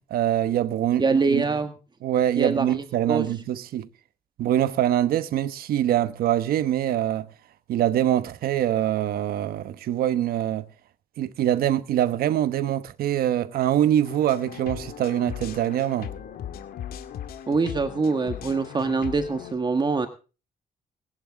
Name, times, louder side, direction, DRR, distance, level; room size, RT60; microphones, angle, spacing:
voice 1, 0.1-1.5 2.0-3.9 4.4-7.3 7.7-10.6 11.2-16.1, right 11 dB, 85° right, 1.1 m, -24 dB
voice 2, 1.0-1.7 2.4-3.3 17.5-20.1, right 4 dB, 30° right, 1.4 m, -24 dB
sound 1, 14.0-19.5, left 9 dB, 85° left, 2.1 m, -38 dB
21.5 x 11.0 x 3.6 m
cardioid pair, 110°, 15 cm